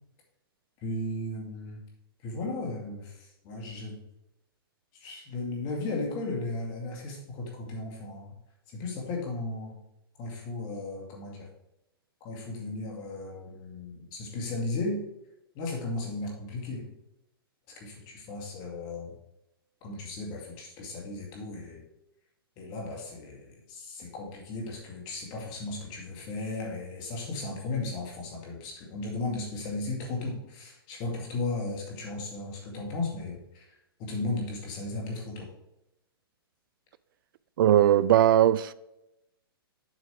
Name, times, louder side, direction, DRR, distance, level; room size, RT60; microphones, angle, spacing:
voice 1, 0.8-1.8 2.2-4.0 4.9-8.3 8.7-9.8 10.2-11.5 12.2-15.0 15.5-16.9 17.7-19.1 19.8-21.8 22.6-35.5, left 2 dB, 35° left, 2.2 m, -35 dB
voice 2, 37.6-38.7, right 11 dB, 60° right, 0.4 m, -19 dB
7.4 x 5.7 x 4.5 m
hypercardioid pair, 125°, 13 cm